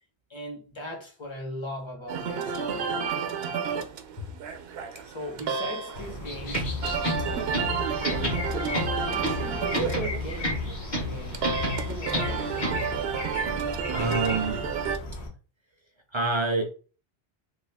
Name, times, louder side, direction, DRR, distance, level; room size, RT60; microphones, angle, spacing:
voice 1, 0.3-3.3 4.2-4.3 5.0-6.8 7.2-7.7 8.5-10.6 10.9-11.5 11.8-12.4, equal, 30° left, 1.0 m, -39 dB
sound 1, 2.1-15.0, right 6 dB, 75° right, 0.8 m, -31 dB
sound 2, 5.9-15.3, left 2 dB, 80° left, 1.2 m, -37 dB
sound 3, 6.5-13.0, left 1 dB, 45° left, 1.4 m, -31 dB
voice 2, 13.9-14.6 16.1-16.7, right 3 dB, 45° right, 0.4 m, -27 dB
3.1 x 2.4 x 3.4 m
omnidirectional pair, 1.1 m